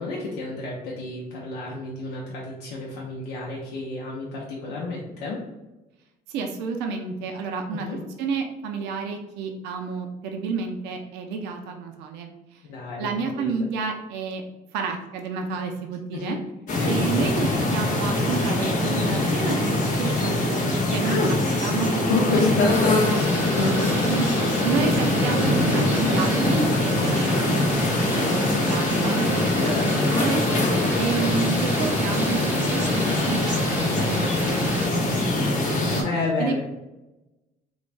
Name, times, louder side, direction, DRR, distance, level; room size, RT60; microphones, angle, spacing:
voice 1, 0.0-5.4 7.8-8.0 12.7-13.5 16.1-16.4 16.7-16.9 21.0-21.3 22.1-23.9 29.6-30.1 30.6-30.9 36.0-36.6, left 3 dB, 90° left, -4 dB, 0.6 m, -28 dB
voice 2, 6.3-12.6 13.0-14.4 14.7-16.4 16.9-22.6 24.1-27.6 28.0-36.1 36.4-36.6, right 5 dB, 90° right, 4 dB, 0.4 m, -30 dB
sound 1, 16.7-36.0, left 2 dB, 50° left, 0.7 m, -23 dB
Thunder / Rain, 22.7-34.9, equal, 10° right, 0.9 m, -29 dB
3.2 x 2.2 x 2.5 m, 1.0 s
cardioid pair, 110°, 17 cm